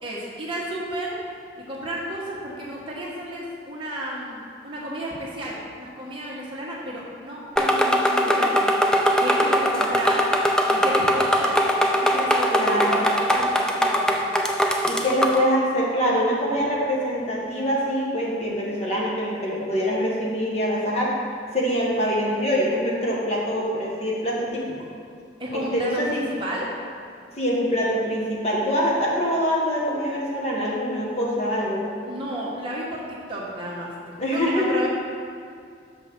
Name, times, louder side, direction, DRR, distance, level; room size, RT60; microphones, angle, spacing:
voice 1, 0.0-1.2 1.6-8.7 9.2-10.3 10.7-14.1 25.4-26.7 32.1-33.0 33.3-34.9, right 1 dB, 25° right, -5 dB, 1.4 m, -32 dB
sound 1, 7.6-15.5, equal, 5° left, 0.3 m, -21 dB
voice 2, 12.5-13.0 14.8-21.1 21.5-24.9 25.5-26.2 27.4-31.8 34.2-34.7, equal, 35° left, -4 dB, 1.3 m, -24 dB
6.3 x 5.1 x 6.0 m, 2.2 s
head